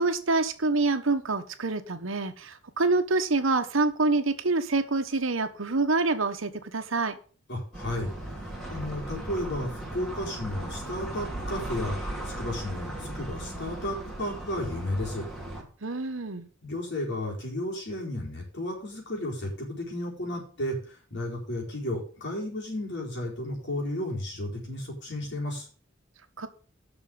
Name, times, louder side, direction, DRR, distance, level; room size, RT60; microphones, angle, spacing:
voice 1, 0.0-7.1 15.8-16.5 26.4-26.5, right 3 dB, 75° right, 9 dB, 1.1 m, -26 dB
voice 2, 7.5-15.2 16.6-25.7, left 1 dB, 60° left, -1 dB, 4.3 m, -33 dB
sound 1, 7.7-15.6, right 1 dB, ahead, 3.0 m, -37 dB
7.3 x 6.3 x 7.8 m, 0.41 s
head